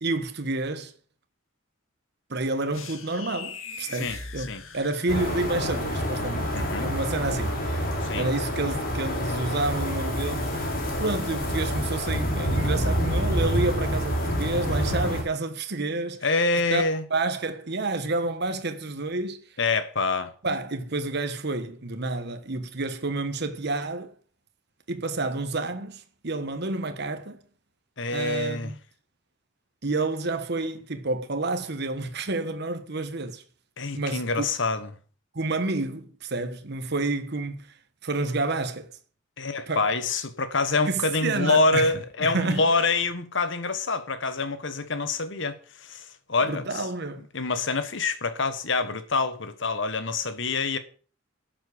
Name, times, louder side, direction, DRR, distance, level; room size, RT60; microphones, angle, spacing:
voice 1, 0.0-0.9 2.3-7.9 8.1-10.7 11.0-16.3 16.7-16.8 17.1-19.6 20.4-24.1 24.9-27.4 28.1-28.8 29.8-33.4 33.9-34.5 35.3-37.7 38.0-38.9 39.7-39.9 40.9-41.9 42.2-42.9 46.4-47.2, right 2 dB, 55° right, 1.3 m, -29 dB
sound 1, 2.7-5.6, left 5 dB, 85° left, 1.9 m, -40 dB
sound 2, 5.1-15.2, equal, 45° left, 3.3 m, -27 dB
voice 2, 6.5-6.9 8.0-8.3 16.2-17.0 19.6-20.3 28.0-28.7 33.8-34.9 39.4-46.7 47.3-50.8, left 3 dB, 65° left, 1.4 m, -26 dB
12.0 x 7.6 x 6.8 m
head